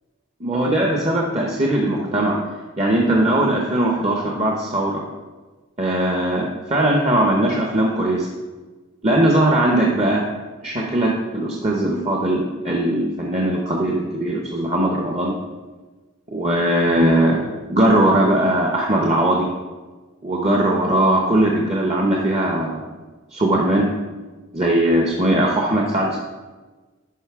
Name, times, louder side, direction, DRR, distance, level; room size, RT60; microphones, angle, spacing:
voice 1, 0.4-2.4 2.8-5.0 5.8-8.3 9.0-10.2 10.6-15.3 16.3-19.5 20.2-22.8 23.3-23.9 24.5-26.2, right 1 dB, 30° right, -1 dB, 0.7 m, -19 dB
10.5 x 5.2 x 3.5 m, 1.3 s
head